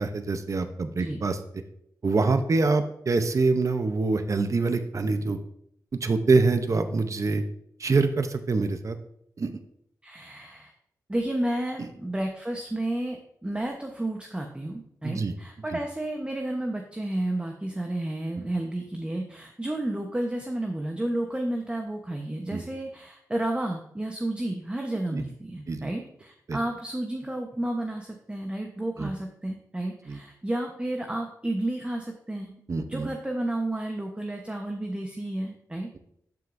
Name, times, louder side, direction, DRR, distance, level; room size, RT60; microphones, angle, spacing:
voice 1, 0.0-1.4 2.0-5.4 6.0-7.4 7.8-9.0 9.4-9.6 15.0-15.3 22.5-22.6 25.1-25.2 25.7-25.9 26.5-26.6 29.0-29.1 30.1-30.2 32.7-33.1, right 3 dB, 50° right, 8 dB, 0.7 m, -25 dB
voice 2, 10.0-10.7 11.1-32.5 32.9-36.0, right 1 dB, 15° right, 2 dB, 1.0 m, -31 dB
12.0 x 6.4 x 2.6 m, 0.73 s
cardioid pair, 65°, 7 cm